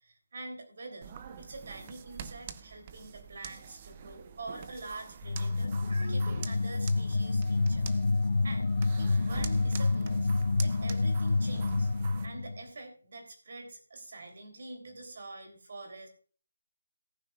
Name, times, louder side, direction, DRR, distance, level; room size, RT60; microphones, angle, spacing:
voice 1, 0.0-7.9 8.4-10.3 10.6-11.9 12.2-16.1, right 2 dB, 45° right, 4 dB, 3.4 m, -45 dB
sound 1, 1.0-12.3, right 8 dB, 20° right, 0.6 m, -46 dB
sound 2, 5.2-12.6, left 3 dB, 60° left, 0.6 m, -28 dB
18.0 x 9.3 x 2.5 m, 0.40 s
figure-of-eight pair, 170°, 0 cm